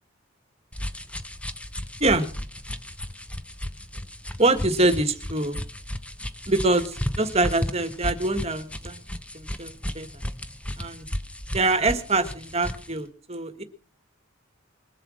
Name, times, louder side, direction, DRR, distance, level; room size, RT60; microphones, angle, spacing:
sound 1, 0.7-12.9, left 1 dB, 5° left, 0.7 m, -34 dB
voice 1, 4.4-5.6 6.5-9.0 9.3-10.1 10.8-11.0 11.5-13.6, right 2 dB, 30° right, 9 dB, 1.6 m, -24 dB
21.5 x 7.8 x 6.4 m, 0.41 s
head